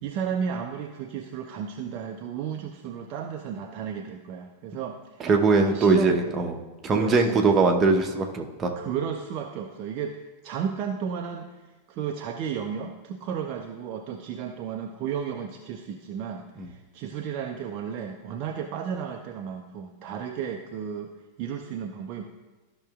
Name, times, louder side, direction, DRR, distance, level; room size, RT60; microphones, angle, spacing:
voice 1, 0.0-5.3 5.5-6.2 6.9-7.4 8.8-10.2 10.4-21.1 21.4-22.2, right 7 dB, 40° right, 3 dB, 0.5 m, -33 dB
voice 2, 5.2-6.6 6.8-8.7 16.6-16.7, right 3 dB, 25° right, 3 dB, 0.9 m, -21 dB
13.5 x 6.0 x 2.4 m, 1.2 s
figure-of-eight pair, 90°, 0 cm